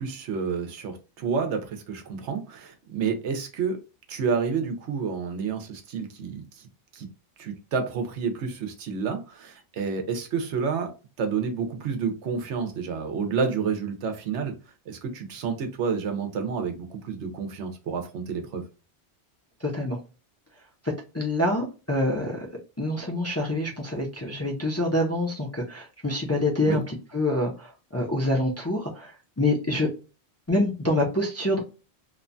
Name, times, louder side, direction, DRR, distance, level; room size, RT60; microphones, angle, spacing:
voice 1, 0.0-3.8 4.1-6.6 6.9-7.1 7.4-10.9 11.2-14.5 14.9-18.6 26.6-26.8, right 5 dB, 90° right, 5 dB, 1.0 m, -29 dB
voice 2, 19.6-20.0 21.1-22.5 22.8-29.9 30.5-31.6, left 1 dB, 20° left, -2 dB, 0.4 m, -26 dB
2.9 x 2.2 x 2.5 m, 0.32 s
omnidirectional pair, 1.1 m